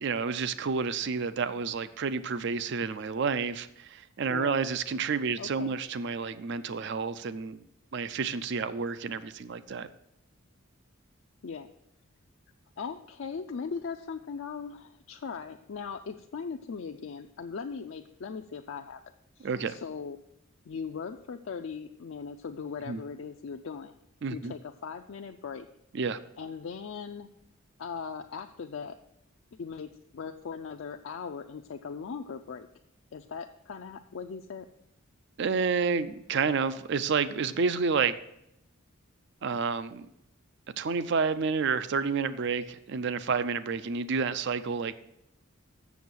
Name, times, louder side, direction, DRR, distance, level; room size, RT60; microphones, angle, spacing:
voice 1, 0.0-7.6 7.9-9.9 19.4-19.8 22.9-23.0 24.2-24.5 25.9-26.2 35.4-38.2 39.4-40.1 40.8-44.9, right 5 dB, 55° right, 14 dB, 0.4 m, -30 dB
voice 2, 4.3-4.7 5.4-5.7 11.4-11.7 12.8-19.0 19.4-20.2 20.6-24.0 24.3-25.7 26.4-27.3 27.8-29.0 29.6-32.7 33.1-34.7, left 5 dB, 60° left, 4 dB, 0.4 m, -39 dB
7.1 x 6.7 x 6.2 m, 0.80 s
head